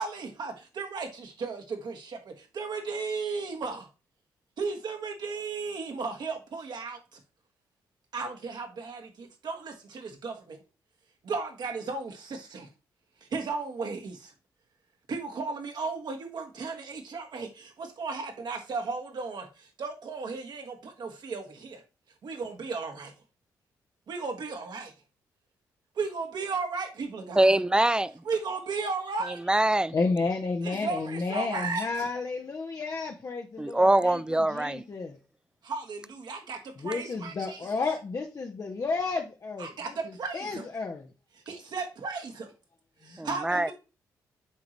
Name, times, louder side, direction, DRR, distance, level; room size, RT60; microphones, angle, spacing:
voice 1, 0.0-3.9 4.6-7.2 8.1-10.6 11.2-12.7 13.2-14.3 15.1-21.8 22.2-23.1 24.1-24.9 26.0-27.5 28.2-29.4 30.6-32.1 35.6-37.7 39.6-39.9 40.2-40.7 41.3-42.5 43.0-43.7, right 4 dB, 60° right, 1.7 m, -35 dB
voice 2, 27.4-28.1 29.3-29.9 33.6-34.8 43.2-43.7, right 1 dB, 10° right, 0.5 m, -23 dB
voice 3, 29.9-35.2 36.8-39.7 40.3-41.1 43.1-43.2, left 4 dB, 45° left, 0.9 m, -31 dB
8.5 x 3.8 x 3.1 m
hypercardioid pair, 45°, 8 cm